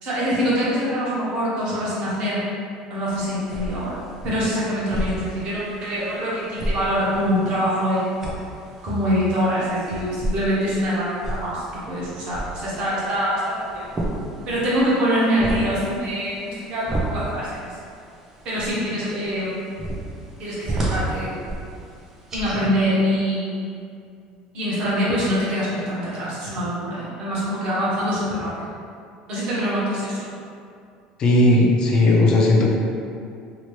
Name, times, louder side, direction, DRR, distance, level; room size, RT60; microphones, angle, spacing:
voice 1, 0.0-2.4 2.9-4.0 4.2-8.2 8.8-13.9 14.5-17.8 18.4-19.6 20.4-21.5 22.3-23.7 24.5-28.7 29.3-30.2, equal, 50° right, -8 dB, 1.2 m, -24 dB
sound 1, 3.1-22.6, right 1 dB, 20° right, 0.6 m, -33 dB
voice 2, 31.2-32.7, left 2 dB, 35° left, -1 dB, 0.4 m, -16 dB
2.9 x 2.9 x 3.2 m, 2.4 s
cardioid pair, 150°, 2 cm